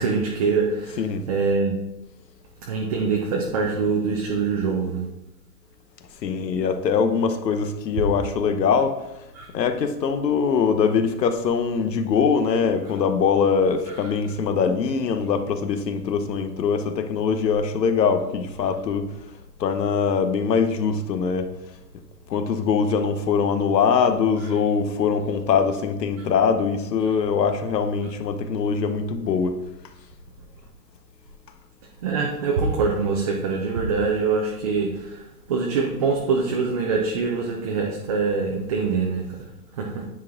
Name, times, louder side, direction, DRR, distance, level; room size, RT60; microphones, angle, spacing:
voice 1, 0.0-1.8 2.7-5.1 9.3-9.5 13.9-14.0 27.1-27.2 32.0-39.5 39.8-40.1, right 4 dB, 25° right, 0 dB, 0.5 m, -24 dB
voice 2, 6.2-9.0 9.5-19.1 19.6-21.5 22.3-29.5, left 6 dB, 80° left, 8 dB, 1.1 m, -22 dB
9.6 x 4.4 x 3.7 m, 0.92 s
hypercardioid pair, 150°, 49 cm